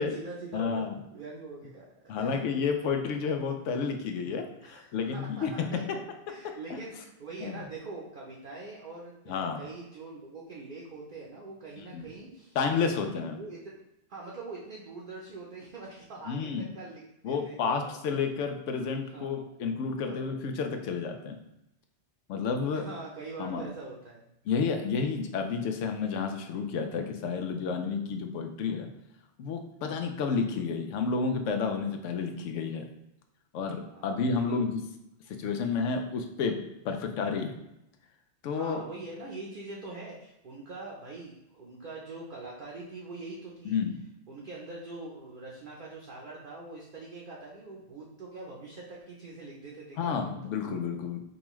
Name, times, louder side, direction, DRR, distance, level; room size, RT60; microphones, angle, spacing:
voice 1, 0.0-1.9 2.1-2.4 2.8-2.9 4.6-6.0 6.3-13.8 14.1-18.2 19.0-19.4 20.0-20.3 22.7-24.2 33.9-34.7 38.5-43.8 44.3-50.5, right 3 dB, 50° right, -3 dB, 0.7 m, -43 dB
voice 2, 0.5-0.9 2.1-6.0 7.4-7.5 9.3-9.6 11.9-12.0 12.6-13.3 16.3-16.7 17.2-21.4 22.3-22.8 23.4-23.6 24.5-28.9 29.4-32.9 33.5-34.8 35.4-36.6 36.8-37.5 38.4-38.8 43.7-43.9 50.0-51.2, left 5 dB, 90° left, 5 dB, 0.9 m, -30 dB
5.2 x 2.3 x 3.0 m, 0.86 s
omnidirectional pair, 1.2 m